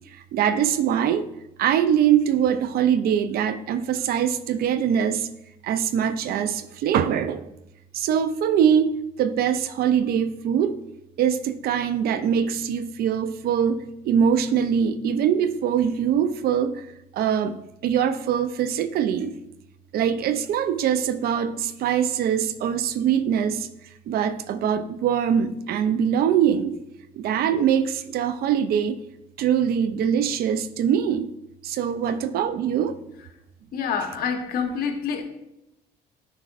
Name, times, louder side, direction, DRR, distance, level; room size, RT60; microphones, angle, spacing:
voice 1, 0.1-1.3 1.6-5.3 5.6-7.5 7.9-10.8 11.2-16.8 17.1-19.3 19.9-23.7 24.1-26.8 27.2-29.0 29.4-31.3 31.6-33.0, right 8 dB, 65° right, 12 dB, 0.5 m, -23 dB
voice 2, 33.7-35.2, left 6 dB, 60° left, 5 dB, 1.0 m, -27 dB
10.0 x 4.6 x 2.5 m, 0.89 s
cardioid pair, 110°, 17 cm